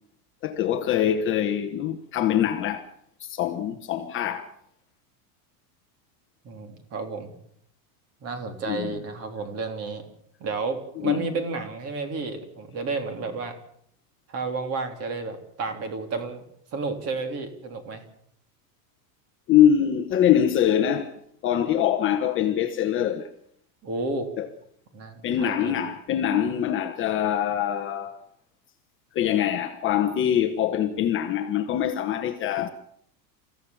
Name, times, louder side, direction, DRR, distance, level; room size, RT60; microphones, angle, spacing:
voice 1, 0.4-2.8 3.2-4.5 8.7-8.9 11.0-11.3 19.5-23.3 24.4-24.5 25.2-28.2 29.1-32.7, left 10 dB, 25° left, 1.2 m, -24 dB
voice 2, 6.4-7.4 8.2-10.0 10.4-13.6 14.3-16.4 16.7-18.0 23.8-24.3 24.9-25.8, right 3 dB, 30° right, 3.4 m, -31 dB
28.5 x 15.0 x 7.2 m
supercardioid pair, 170°, 48 cm